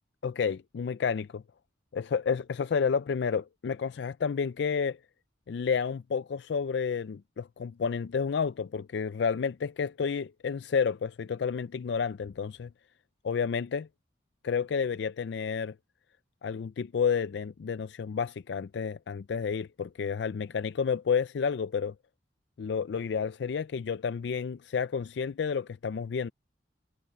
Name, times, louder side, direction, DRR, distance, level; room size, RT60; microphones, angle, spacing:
voice 1, 0.2-1.4 1.9-5.0 5.5-12.7 13.2-13.9 14.4-15.7 16.4-21.9 22.6-26.3, left 6 dB, 65° left, 0.4 m, -30 dB
head